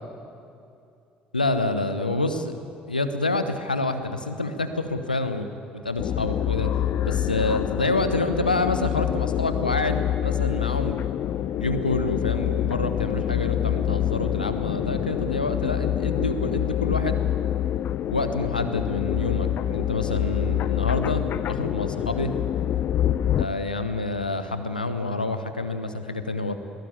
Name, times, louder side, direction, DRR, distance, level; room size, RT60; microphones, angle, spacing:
voice 1, 1.3-2.5 2.9-6.7 7.0-11.1 11.6-17.2 18.1-22.3 23.4-26.5, left 2 dB, 85° left, 9 dB, 1.0 m, -27 dB
sound 1, 6.0-23.5, left 11 dB, 50° left, 0.7 m, -26 dB
21.0 x 18.0 x 8.5 m, 2.6 s
figure-of-eight pair, 50°, 5 cm